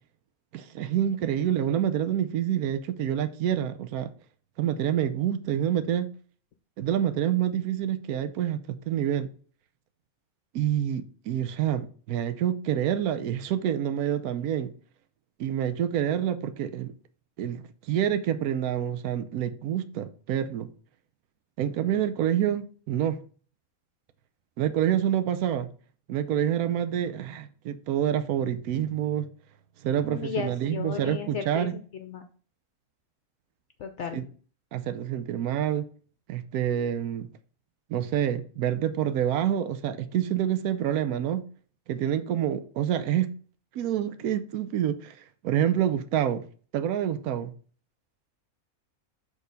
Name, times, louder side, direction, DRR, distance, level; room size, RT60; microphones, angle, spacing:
voice 1, 0.5-4.1 4.6-6.1 6.8-9.3 10.5-14.7 15.4-16.9 17.4-20.7 21.6-23.2 24.6-25.7 26.1-29.3 29.8-31.7 34.1-34.2 34.7-35.8 36.3-37.3 37.9-41.4 41.9-43.3 43.7-45.2 45.4-46.4 46.7-47.5, right 10 dB, 85° right, 1.1 m, -27 dB
voice 2, 30.1-32.3 33.8-34.2, left 7 dB, 65° left, 0.8 m, -35 dB
6.3 x 3.5 x 5.2 m
omnidirectional pair, 1.5 m